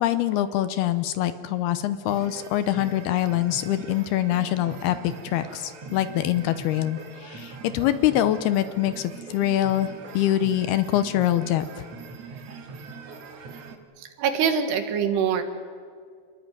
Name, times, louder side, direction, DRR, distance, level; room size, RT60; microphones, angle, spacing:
voice 1, 0.0-9.9 10.1-11.7, left 12 dB, 75° left, 11 dB, 2.6 m, -24 dB
sound 1, 2.1-13.8, right 4 dB, 50° right, 2.3 m, -42 dB
voice 2, 14.2-15.4, right 7 dB, 75° right, 7 dB, 3.6 m, -23 dB
28.5 x 20.5 x 9.4 m, 2.1 s
omnidirectional pair, 5.0 m